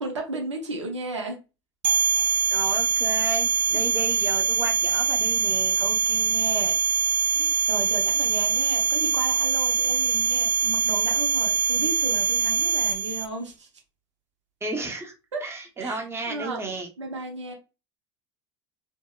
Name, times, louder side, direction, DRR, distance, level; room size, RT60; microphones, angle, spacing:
voice 1, 0.0-1.4 3.7-3.9 5.8-6.8 7.3-13.7 15.3-15.5 15.8-16.7 17.0-17.5, right 2 dB, 90° right, 0.5 m, -34 dB
sound 1, 1.8-13.2, right 6 dB, 50° right, 0.8 m, -23 dB
voice 2, 2.5-5.8 14.6-15.1 15.4-16.9, right 3 dB, 15° right, 0.7 m, -33 dB
2.7 x 2.0 x 2.3 m
hypercardioid pair, 75°, 15 cm